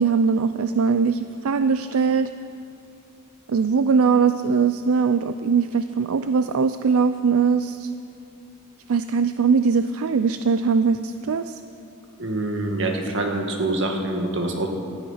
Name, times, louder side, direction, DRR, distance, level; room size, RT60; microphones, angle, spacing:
voice 1, 0.0-2.3 3.5-7.9 8.9-11.6, right 5 dB, 80° right, 11 dB, 0.4 m, -21 dB
voice 2, 12.2-14.7, right 2 dB, 60° right, 3 dB, 1.7 m, -25 dB
18.0 x 13.0 x 5.7 m, 2.6 s
head